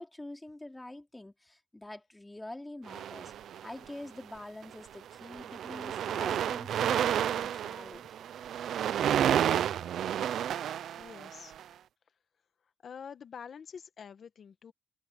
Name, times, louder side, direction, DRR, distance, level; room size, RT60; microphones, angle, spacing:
voice 1, 0.0-3.3 3.6-8.3, left 1 dB, 10° left, 3.3 m, -46 dB
sound 1, 2.9-3.9 4.6-4.8 5.1-11.6, right 10 dB, 70° right, 0.6 m, -31 dB
voice 2, 10.9-11.5 12.8-14.7, left 7 dB, 50° left, 1.7 m, -46 dB
cardioid pair, 90°, 0 cm